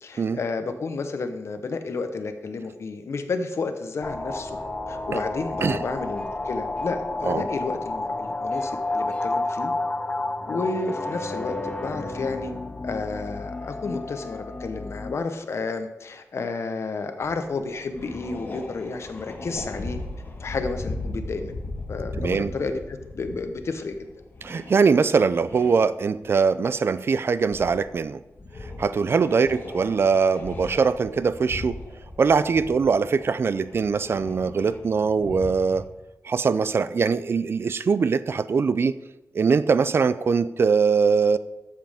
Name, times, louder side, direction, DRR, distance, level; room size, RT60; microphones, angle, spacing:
voice 1, 0.0-4.6 4.9-9.7 10.5-12.5 12.8-20.0 20.4-21.5 21.9-22.8 23.1-24.0 29.4-29.5, left 4 dB, 55° left, 8 dB, 0.9 m, -31 dB
sound 1, 4.0-15.2, left 2 dB, 20° left, 0.6 m, -31 dB
sound 2, 17.2-17.5 17.8-26.3 26.6-27.0 27.4-28.0 28.4-35.9, left 2 dB, 40° left, 1.5 m, -38 dB
voice 2, 22.2-22.5 24.4-28.2 28.8-31.8 32.2-35.8 36.2-38.9 39.3-41.4, right 5 dB, 50° right, 15 dB, 0.4 m, -22 dB
13.0 x 7.5 x 3.5 m, 0.98 s
wide cardioid pair, 115°, 5 cm